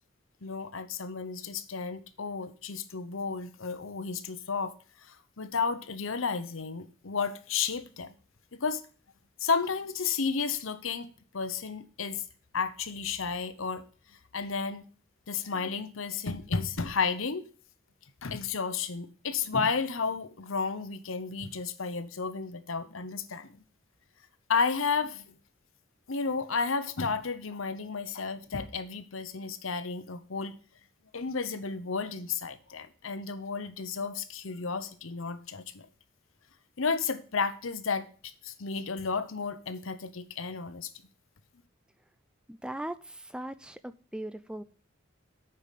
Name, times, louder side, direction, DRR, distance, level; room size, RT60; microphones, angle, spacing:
voice 1, 0.4-4.7 5.0-8.1 8.5-8.8 9.4-11.1 11.3-12.2 12.5-13.8 14.3-14.8 15.3-17.4 18.2-23.6 24.5-25.4 26.1-30.5 31.1-35.8 36.8-40.9, left 5 dB, 80° left, 0.9 m, -32 dB
voice 2, 42.5-44.6, right 1 dB, 5° right, 0.4 m, -39 dB
8.6 x 5.7 x 6.6 m
head